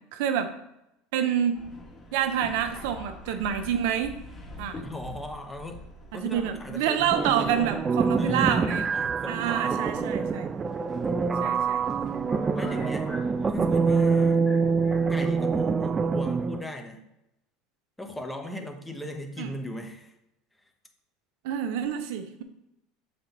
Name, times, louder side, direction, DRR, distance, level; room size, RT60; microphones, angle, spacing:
voice 1, 0.1-0.5 1.1-1.6 2.1-4.1 4.6-4.8 6.1-8.9 9.3-10.5 11.4-11.8 19.4-19.5 21.4-22.4, right 9 dB, 75° right, 8 dB, 0.8 m, -27 dB
Subway metro underground, 1.5-15.1, left 1 dB, 30° left, 1.7 m, -46 dB
voice 2, 4.8-5.8 6.1-7.5 8.1-9.8 12.5-13.1 13.5-14.4 15.1-17.1 18.0-20.2, left 1 dB, 5° left, 3 dB, 1.0 m, -38 dB
sound 1, 7.1-16.6, right 5 dB, 20° right, 0.4 m, -25 dB
6.8 x 4.2 x 4.0 m, 0.86 s
supercardioid pair, 125°, 0 cm